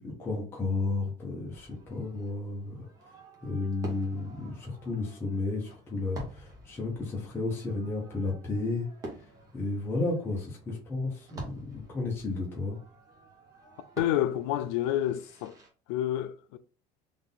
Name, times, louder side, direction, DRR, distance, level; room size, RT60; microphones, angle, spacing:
voice 1, 0.0-2.9 3.4-8.9 9.5-12.8, left 3 dB, 15° left, 0.9 m, -32 dB
Fireworks, 1.5-15.7, right 2 dB, 25° right, 1.0 m, -48 dB
voice 2, 14.0-15.5 15.9-16.6, left 12 dB, 75° left, 0.4 m, -29 dB
3.7 x 2.6 x 3.8 m
cardioid pair, 175°, 15 cm